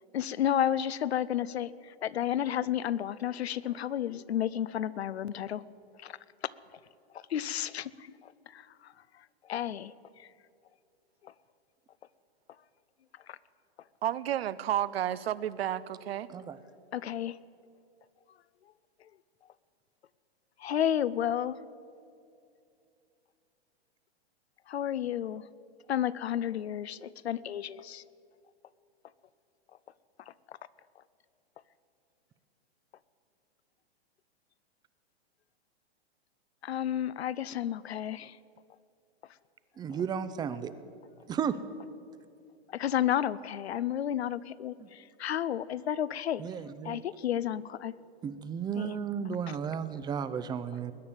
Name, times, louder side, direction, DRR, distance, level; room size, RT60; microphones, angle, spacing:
voice 1, 0.1-5.6 6.0-6.2 6.7-6.8 7.1-10.3 11.2-11.3 13.3-13.4 16.9-17.4 19.0-19.1 20.6-21.6 24.7-25.5 25.9-28.0 30.5-30.6 36.6-38.4 42.7-46.4 46.8-47.9 48.8-49.0, left 10 dB, 80° left, 18 dB, 0.7 m, -32 dB
voice 2, 14.0-16.3, right 11 dB, 70° right, 17 dB, 0.7 m, -31 dB
voice 3, 39.8-40.7 41.3-41.6 44.8-44.9 46.4-47.0 48.2-50.9, right 7 dB, 15° right, 14 dB, 0.5 m, -34 dB
21.0 x 9.5 x 7.2 m, 2.5 s
hypercardioid pair, 120°, 31 cm